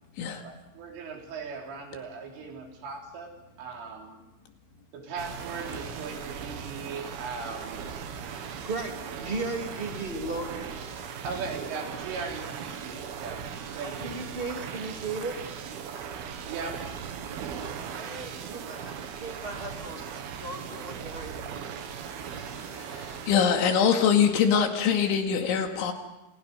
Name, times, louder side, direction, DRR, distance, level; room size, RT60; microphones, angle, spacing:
voice 1, 0.4-3.3 3.6-4.2 4.9-7.9 11.2-14.2 16.5-16.9, right 4 dB, 85° right, 1 dB, 6.3 m, -38 dB
sound 1, 5.2-23.5, right 7 dB, 60° right, 3.2 m, -38 dB
voice 2, 8.6-10.9 13.8-15.4 17.6-21.6, right 3 dB, 15° right, 2 dB, 2.3 m, -36 dB
voice 3, 22.8-25.9, left 7 dB, 75° left, 4 dB, 4.5 m, -23 dB
29.5 x 28.0 x 5.5 m, 0.96 s
omnidirectional pair, 5.6 m